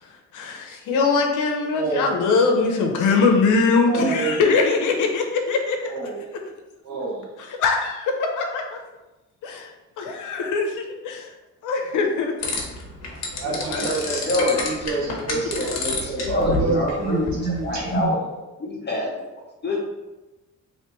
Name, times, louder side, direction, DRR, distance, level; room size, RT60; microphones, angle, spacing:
voice 1, 0.3-5.8 7.4-8.8 9.4-9.7 10.0-11.3 11.6-12.3 13.6-13.8 14.5-14.6, left 4 dB, 80° left, 3 dB, 0.7 m, -22 dB
voice 2, 1.7-2.1 3.9-4.4 5.9-6.2 6.8-7.3 13.3-18.2, right 3 dB, 70° right, -2 dB, 1.2 m, -27 dB
sound 1, 12.4-18.0, left 3 dB, 60° left, 1.0 m, -30 dB
voice 3, 13.8-14.6 15.1-17.4 17.6-19.1 19.6-19.8, left 2 dB, 35° left, -2 dB, 0.9 m, -27 dB
3.2 x 3.0 x 3.0 m, 1.1 s
cardioid pair, 90°, 30 cm